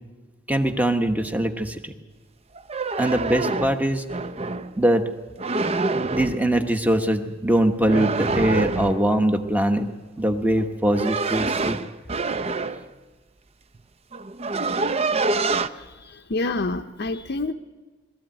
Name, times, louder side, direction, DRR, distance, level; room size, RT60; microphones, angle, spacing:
voice 1, 0.5-1.9 3.0-4.0 4.8-5.1 6.1-9.9 10.2-11.8, right 1 dB, 10° right, 6 dB, 1.2 m, -22 dB
sound 1, 2.6-4.7 5.4-6.4 7.9-9.1 10.6-12.9 13.7-13.8 14.1-15.7, right 3 dB, 35° right, 0.6 m, -26 dB
voice 2, 15.7-17.5, left 2 dB, 55° left, 4 dB, 0.7 m, -28 dB
21.0 x 14.0 x 9.0 m, 1.4 s
head